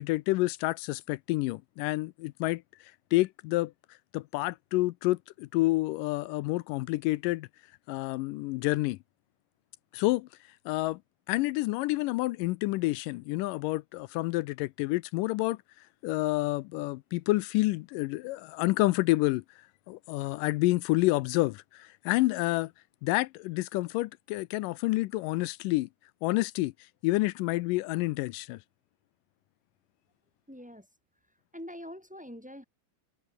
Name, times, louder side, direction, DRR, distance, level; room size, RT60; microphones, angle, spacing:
voice 1, 0.0-2.6 3.1-3.7 4.1-7.5 7.9-9.0 9.9-10.3 10.7-11.0 11.3-15.6 16.0-19.4 19.9-22.7 23.0-25.9 26.2-26.7 27.0-28.6, left 20 dB, 80° left, 2.1 m, -28 dB
voice 2, 30.5-30.9 31.5-32.6, equal, ahead, 3.2 m, -44 dB
omnidirectional pair, 4.1 m